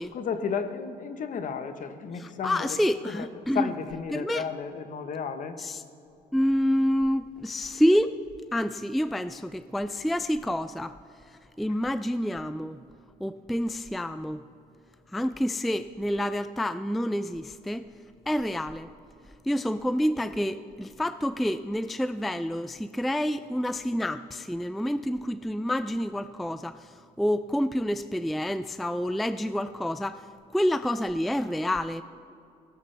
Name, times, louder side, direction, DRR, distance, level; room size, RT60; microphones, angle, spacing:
voice 1, 0.1-2.8 3.0-3.3 3.5-5.6, left 6 dB, 50° left, 9 dB, 1.2 m, -33 dB
voice 2, 2.1-3.7 4.1-4.4 5.6-5.8 6.3-8.2 8.5-10.9 11.3-12.8 13.2-14.4 15.1-17.9 18.3-18.9 19.4-30.2 30.5-32.0, equal, ahead, 12 dB, 0.3 m, -28 dB
20.0 x 18.0 x 3.4 m, 2.6 s
cardioid pair, 110°, 17 cm